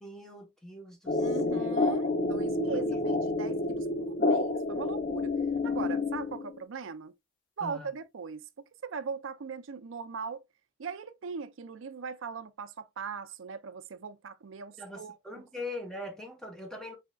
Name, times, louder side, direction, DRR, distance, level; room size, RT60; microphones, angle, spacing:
voice 1, 0.0-1.7 2.7-3.1 7.6-7.9 14.8-17.0, left 2 dB, 5° left, 0.9 m, -42 dB
sound 1, 1.1-6.6, left 2 dB, 40° left, 0.6 m, -29 dB
voice 2, 1.1-5.3 5.6-7.2 7.6-10.4 10.8-15.1, right 5 dB, 70° right, 0.5 m, -39 dB
4.1 x 3.6 x 2.3 m
head